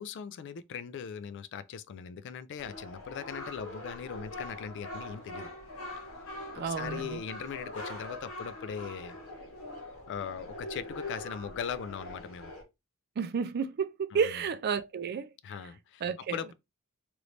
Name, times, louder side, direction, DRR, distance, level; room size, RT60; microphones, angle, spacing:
voice 1, 0.0-5.5 6.6-9.2 10.1-12.5 14.1-14.3 15.4-16.5, left 7 dB, 55° left, 0.3 m, -40 dB
sound 1, 2.6-12.6, left 1 dB, 85° left, 1.1 m, -43 dB
voice 2, 6.5-7.2 13.2-15.3 16.0-16.4, right 6 dB, 50° right, 0.4 m, -31 dB
3.1 x 2.6 x 3.1 m
head